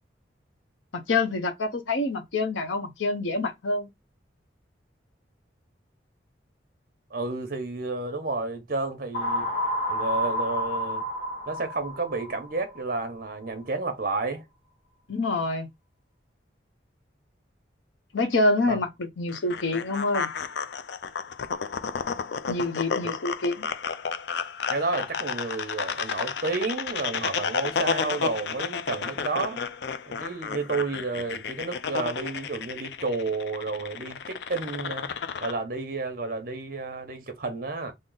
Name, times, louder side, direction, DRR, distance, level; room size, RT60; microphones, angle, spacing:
voice 1, 0.9-3.9 15.1-15.7 18.1-20.3 22.5-23.7, left 2 dB, 80° left, 0.8 m, -26 dB
voice 2, 7.1-9.5 9.9-11.0 11.5-14.4 18.7-18.8 24.7-29.6 30.1-35.1 35.4-37.9, right 3 dB, 50° right, 0.8 m, -31 dB
sound 1, 9.1-13.0, equal, 35° left, 1.0 m, -30 dB
sound 2, 19.3-35.5, left 6 dB, 60° left, 0.4 m, -32 dB
3.7 x 2.1 x 3.8 m
head